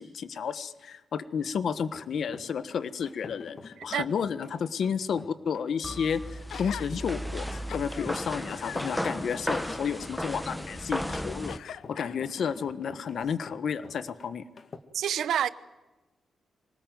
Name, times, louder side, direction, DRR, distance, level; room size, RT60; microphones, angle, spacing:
voice 1, 0.0-14.4, left 7 dB, 65° left, 1.4 m, -32 dB
sound 1, 1.8-14.8, left 4 dB, 45° left, 2.0 m, -49 dB
sound 2, 5.8-11.6, equal, 5° left, 1.2 m, -34 dB
Gasp, 6.5-6.9 7.4-8.1 8.5-11.0 11.5-12.6 13.2-13.3, left 9 dB, 85° left, 0.8 m, -44 dB
voice 2, 14.9-15.5, right 9 dB, 85° right, 1.0 m, -27 dB
25.5 x 19.0 x 9.3 m
cardioid pair, 115°, 0 cm